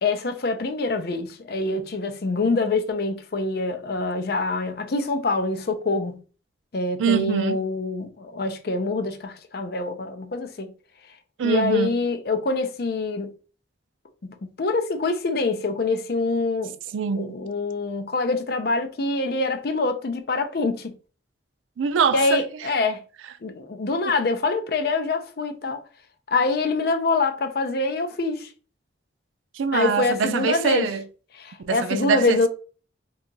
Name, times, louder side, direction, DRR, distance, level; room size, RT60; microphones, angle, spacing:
voice 1, 0.0-6.2 6.7-10.7 11.4-13.3 14.2-16.7 17.2-20.9 22.1-23.0 23.4-25.8 26.3-28.5 29.7-30.9 31.4-32.5, left 3 dB, 55° left, 0.5 m, -25 dB
voice 2, 7.0-7.6 11.4-11.9 16.9-17.3 21.8-22.4 29.5-31.0 31.6-32.5, right 6 dB, 90° right, 0.4 m, -24 dB
2.8 x 2.3 x 3.8 m
head